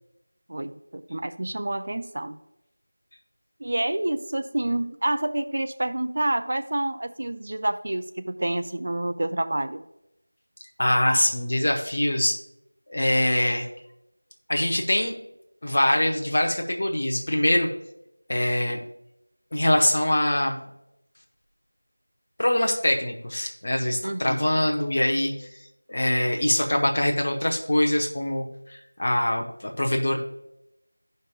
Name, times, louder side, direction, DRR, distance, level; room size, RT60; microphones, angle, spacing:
voice 1, 0.5-2.4 3.6-9.8 24.0-24.4, right 1 dB, 40° right, 10 dB, 0.3 m, -28 dB
voice 2, 10.8-12.4 12.9-13.7 14.5-15.1 15.6-17.7 18.3-18.8 19.5-20.6 22.4-25.5 25.9-30.2, left 1 dB, 35° left, 2 dB, 0.9 m, -23 dB
14.0 x 5.3 x 2.4 m, 0.86 s
figure-of-eight pair, 175°, 0 cm